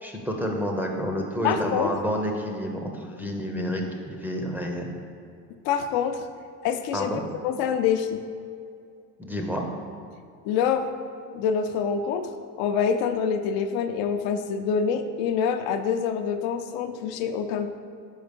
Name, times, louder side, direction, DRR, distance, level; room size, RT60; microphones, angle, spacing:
voice 1, 0.0-4.9 6.9-7.2 9.2-9.7, equal, 5° right, 0 dB, 0.5 m, -29 dB
voice 2, 1.4-1.9 5.6-6.3 6.6-7.1 7.4-8.2 10.4-10.9 11.3-12.3 12.6-17.7, left 7 dB, 75° left, 7 dB, 0.6 m, -26 dB
5.5 x 4.4 x 5.1 m, 2.4 s
cardioid pair, 125°, 39 cm